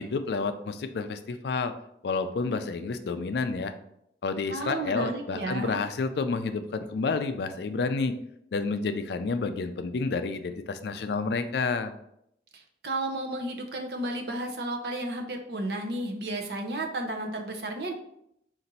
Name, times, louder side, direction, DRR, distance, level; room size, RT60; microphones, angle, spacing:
voice 1, 0.0-1.7 2.0-3.7 4.2-8.2 8.5-11.9, left 4 dB, 70° left, 9 dB, 0.4 m, -30 dB
voice 2, 4.5-5.8 12.5-17.9, right 1 dB, 65° right, 4 dB, 0.6 m, -33 dB
4.1 x 2.6 x 4.0 m, 0.75 s
head